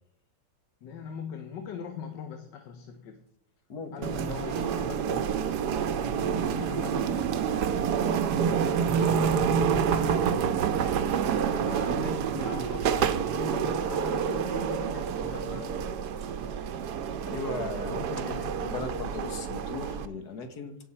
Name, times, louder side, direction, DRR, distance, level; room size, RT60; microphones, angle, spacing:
voice 1, 0.8-3.2 3.8-5.7 6.6-7.8 11.4-12.8 13.3-15.8 17.7-18.9, left 6 dB, 80° left, 6 dB, 1.6 m, -41 dB
voice 2, 3.7-4.2 6.2-6.9 17.2-18.1 18.6-20.8, left 4 dB, 65° left, 7 dB, 1.8 m, -38 dB
sound 1, 4.0-20.1, right 7 dB, 70° right, 1.3 m, -28 dB
17.0 x 6.4 x 4.2 m, 0.70 s
omnidirectional pair, 1.9 m